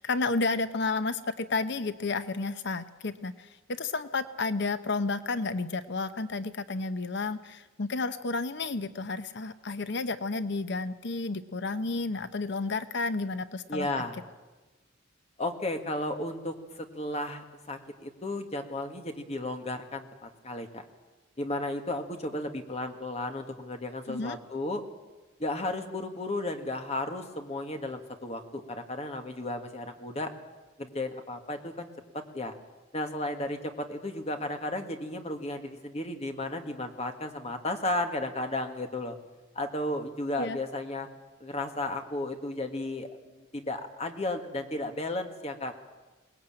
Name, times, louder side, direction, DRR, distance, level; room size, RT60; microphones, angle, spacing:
voice 1, 0.0-13.9 24.1-24.4 40.4-40.6, left 3 dB, 60° left, 12 dB, 0.8 m, -31 dB
voice 2, 13.7-14.2 15.4-20.8 21.4-24.8 25.4-30.3 30.8-31.9 32.1-32.5 32.9-39.2 39.6-41.1 41.4-45.7, left 2 dB, 30° left, 5 dB, 1.9 m, -34 dB
22.5 x 19.0 x 8.9 m, 1.2 s
head